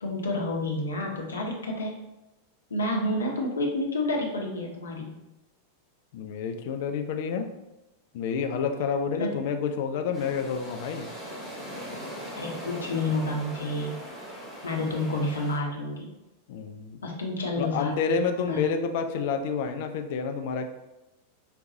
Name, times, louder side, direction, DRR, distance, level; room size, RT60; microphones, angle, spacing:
voice 1, 0.0-2.0 2.7-5.2 9.1-9.3 12.4-14.0 14.6-16.1 17.0-18.1 18.4-18.6, left 1 dB, 70° left, 0 dB, 0.8 m, -29 dB
voice 2, 6.1-7.5 8.1-11.1 16.5-17.0 17.5-20.7, left 6 dB, 50° left, 5 dB, 0.4 m, -29 dB
sound 1, 10.1-15.6, equal, 5° right, 1.3 m, -40 dB
5.0 x 2.3 x 2.7 m, 0.98 s
figure-of-eight pair, 90°, 0 cm